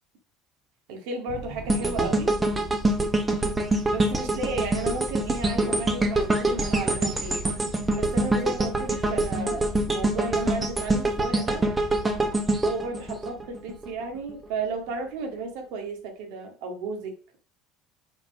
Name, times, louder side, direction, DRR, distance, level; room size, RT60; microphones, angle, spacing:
voice 1, 0.9-2.4 3.9-7.4 7.9-11.7 12.6-17.2, right 3 dB, 75° right, 4 dB, 2.0 m, -33 dB
sound 1, 1.3-15.8, right 2 dB, 35° right, 1.3 m, -42 dB
sound 2, 1.7-13.9 14.3-14.4, right 2 dB, 15° right, 0.9 m, -25 dB
5.6 x 3.9 x 5.5 m, 0.41 s
cardioid pair, 145°, 0 cm